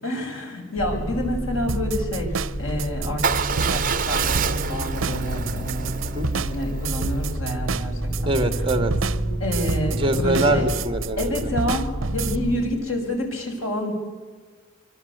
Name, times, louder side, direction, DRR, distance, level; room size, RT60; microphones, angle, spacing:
voice 1, 0.0-2.3 2.6-6.1 6.3-8.3 9.4-10.6 11.2-13.9, left 1 dB, 85° left, 3 dB, 6.5 m, -28 dB
sound 1, 0.8-12.6, right 1 dB, 20° left, 7.1 m, -29 dB
sound 2, 1.7-12.4, right 5 dB, 80° right, 0.7 m, -30 dB
Motorcycle / Engine starting / Idling, 3.2-7.3, right 5 dB, 40° right, 1.1 m, -27 dB
voice 2, 8.3-8.9 9.9-11.5, right 1 dB, 25° right, 9 dB, 2.2 m, -23 dB
25.5 x 25.0 x 8.2 m, 1.5 s
head